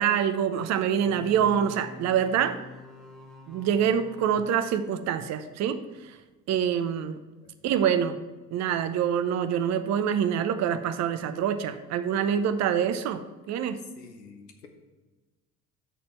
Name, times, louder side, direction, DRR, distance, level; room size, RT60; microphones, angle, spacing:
voice 1, 0.0-2.6 3.5-6.1 6.5-7.2 7.6-8.2 8.5-13.2 13.5-13.8, right 8 dB, 35° right, 10 dB, 0.7 m, -26 dB
sound 1, 1.0-5.4, left 1 dB, ahead, 1.2 m, -47 dB
voice 2, 14.0-14.7, left 5 dB, 80° left, 4 dB, 0.9 m, -49 dB
12.5 x 4.3 x 4.4 m, 1.2 s
figure-of-eight pair, 55°, 47 cm